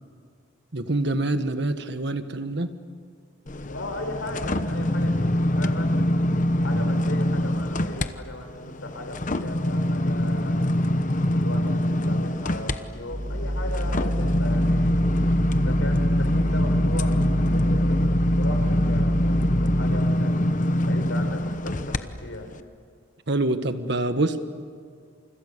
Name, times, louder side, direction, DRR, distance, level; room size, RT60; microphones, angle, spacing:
voice 1, 0.7-2.7 23.3-24.4, right 2 dB, 60° right, 9 dB, 1.5 m, -25 dB
sound 1, 3.5-8.1 8.5-22.0 22.5-22.6, left 1 dB, 40° left, 1.0 m, -24 dB
voice 2, 3.7-5.9 6.6-10.6 11.3-15.0 15.5-20.4 20.8-22.5, left 1 dB, 90° left, 5 dB, 5.0 m, -37 dB
sound 2, 13.1-19.8, equal, 45° right, 6.9 m, -27 dB
30.0 x 28.5 x 6.9 m, 2.1 s
head